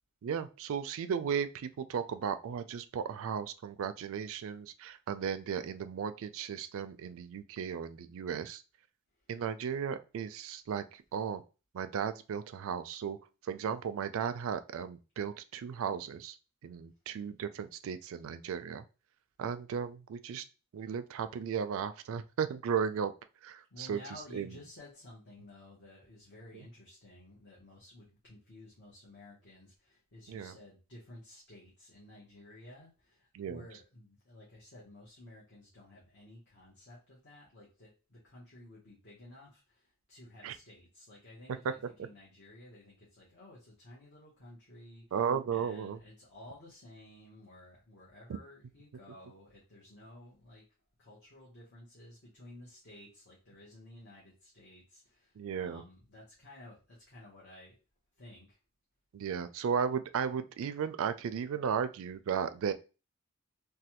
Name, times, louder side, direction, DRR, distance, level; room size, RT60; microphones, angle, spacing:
voice 1, 0.2-8.6 9.3-11.4 11.7-13.2 13.4-16.4 16.6-18.8 19.4-20.4 20.7-23.1 23.4-24.6 26.5-26.7 30.3-30.5 33.3-33.6 40.4-40.6 41.6-41.7 45.1-46.0 48.3-48.4 55.4-55.8 59.1-62.7, right 7 dB, 65° right, 11 dB, 0.3 m, -35 dB
voice 2, 23.7-45.2 45.5-50.6 51.0-57.8 58.2-58.6, left 1 dB, 55° left, -5 dB, 1.0 m, -54 dB
3.2 x 2.2 x 2.9 m, 0.32 s
head